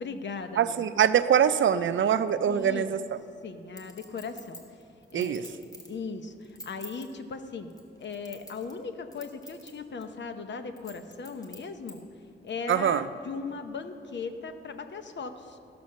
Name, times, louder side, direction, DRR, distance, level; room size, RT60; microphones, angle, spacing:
voice 1, 0.0-0.8 2.5-3.0 3.4-4.6 5.1-5.6 5.9-7.7 8.0-12.1 12.4-15.6, left 4 dB, 60° left, 8 dB, 0.8 m, -38 dB
voice 2, 0.6-3.0 5.1-5.4 12.7-13.0, right 9 dB, 70° right, 12 dB, 0.5 m, -23 dB
Chink clink, 3.8-6.0 6.4-7.1 7.7-8.8 9.1-9.7 10.0-10.1 10.8-12.0 12.5-12.6, left 1 dB, 20° left, 1.6 m, -46 dB
14.5 x 6.1 x 6.4 m, 2.7 s
wide cardioid pair, 110°, 20 cm